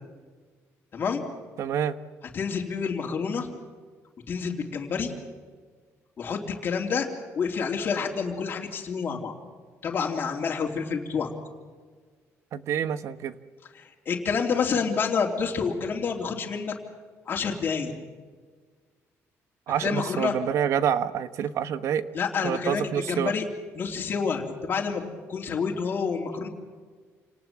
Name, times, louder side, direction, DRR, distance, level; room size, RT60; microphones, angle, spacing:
voice 1, 0.9-1.2 2.3-3.5 4.3-5.1 6.2-7.1 7.3-9.3 9.8-11.3 13.8-16.7 17.3-17.9 19.8-20.4 22.1-22.8 23.1-23.4 23.7-25.0 25.3-26.5, left 5 dB, 40° left, 0 dB, 3.2 m, -28 dB
voice 2, 1.6-2.0 12.5-13.4 19.7-22.1 22.4-23.3, right 9 dB, 65° right, 13 dB, 1.2 m, -27 dB
28.5 x 19.0 x 7.5 m, 1.5 s
cardioid pair, 150°, 5 cm